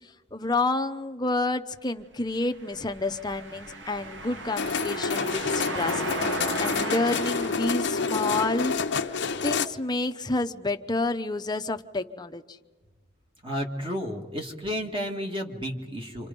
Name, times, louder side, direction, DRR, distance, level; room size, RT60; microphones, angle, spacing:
voice 1, 0.3-8.7 9.4-12.4, left 2 dB, 20° left, 8 dB, 0.8 m, -29 dB
sound 1, 2.6-9.4, right 1 dB, 70° right, 1.7 m, -36 dB
sound 2, 4.6-9.7, left 4 dB, 65° left, 0.8 m, -28 dB
voice 2, 13.4-16.3, equal, 25° right, 2 dB, 2.1 m, -32 dB
27.5 x 27.0 x 5.3 m, 1.3 s
head